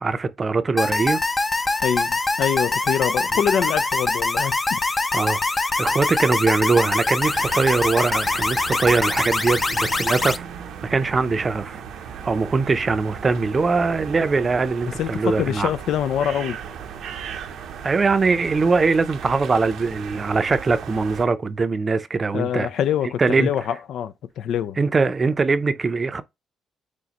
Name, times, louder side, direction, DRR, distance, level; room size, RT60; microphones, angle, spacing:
voice 1, 0.0-1.2 5.1-5.4 5.8-10.5 10.8-11.8 12.2-15.7 17.8-22.7 23.2-23.5 24.8-26.2, right 4 dB, 35° right, 0.5 m, -21 dB
sound 1, 0.8-10.4, left 2 dB, 25° left, 0.5 m, -23 dB
voice 2, 1.8-4.8 15.0-16.6 22.3-24.8, left 9 dB, 75° left, 0.4 m, -25 dB
sound 2, 7.2-21.3, right 7 dB, 80° right, 0.7 m, -36 dB
6.3 x 2.2 x 2.9 m
cardioid pair, 90°, 0 cm